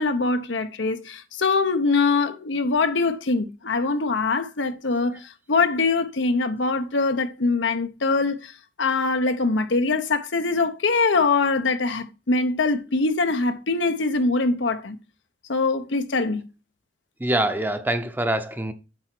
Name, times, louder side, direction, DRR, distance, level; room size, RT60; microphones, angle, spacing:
voice 1, 0.0-5.2 5.5-8.5 8.8-15.0 15.5-16.4, left 3 dB, 80° left, 0.9 m, -23 dB
voice 2, 17.2-18.7, right 1 dB, 10° right, 0.7 m, -24 dB
7.9 x 4.5 x 4.5 m
head